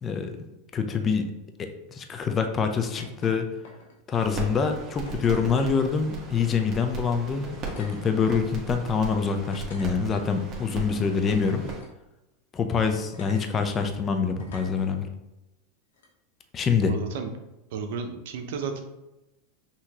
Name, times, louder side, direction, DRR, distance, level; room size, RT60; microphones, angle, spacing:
voice 1, 0.0-0.4 0.7-1.3 1.6-3.5 4.1-11.6 12.5-15.1 16.5-16.9, left 5 dB, 30° left, 6 dB, 0.6 m, -25 dB
sound 1, 3.0-3.4 3.6-4.1 5.0-5.7 6.8-7.0 7.5-8.0 8.7-8.8 9.5-10.4 11.3-11.9 13.1-13.4 14.4-14.8 15.9-16.1, left 3 dB, 80° left, 1.0 m, -44 dB
sound 2, 4.1-11.8, right 4 dB, 35° right, 1.3 m, -38 dB
voice 2, 16.8-17.3 17.7-18.8, right 5 dB, 70° right, 5 dB, 0.7 m, -33 dB
5.7 x 2.9 x 2.9 m, 0.95 s
hypercardioid pair, 110°, 0 cm